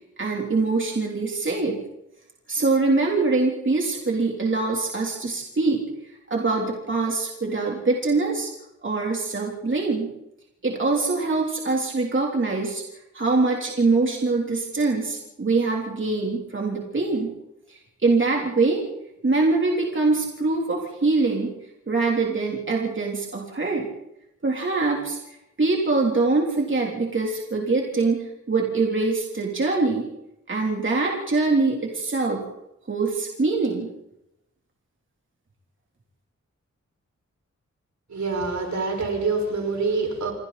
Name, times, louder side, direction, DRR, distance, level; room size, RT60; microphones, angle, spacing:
voice 1, 0.2-1.8 2.5-5.8 6.3-8.5 8.8-10.1 10.6-12.8 13.1-17.3 17.7-18.8 19.2-21.5 21.9-23.9 24.4-30.1 30.5-32.5 32.9-33.9, right 3 dB, 40° right, -1 dB, 3.4 m, -23 dB
voice 2, 38.1-40.3, right 4 dB, 70° right, 3 dB, 5.6 m, -26 dB
28.0 x 24.5 x 4.2 m, 0.86 s
wide cardioid pair, 110°, 29 cm